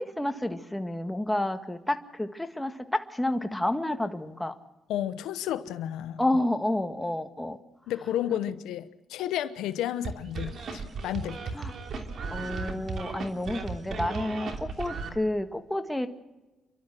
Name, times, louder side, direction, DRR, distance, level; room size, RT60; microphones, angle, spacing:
voice 1, 0.0-4.5 6.2-7.6 11.5-11.7 12.3-16.1, left 1 dB, 5° left, 7 dB, 1.7 m, -30 dB
voice 2, 4.9-6.2 7.9-11.5, left 11 dB, 90° left, 12 dB, 1.0 m, -32 dB
sound 1, 10.0-15.1, right 4 dB, 55° right, 3.0 m, -35 dB
29.0 x 12.5 x 7.7 m, 1.1 s
cardioid pair, 90°, 0 cm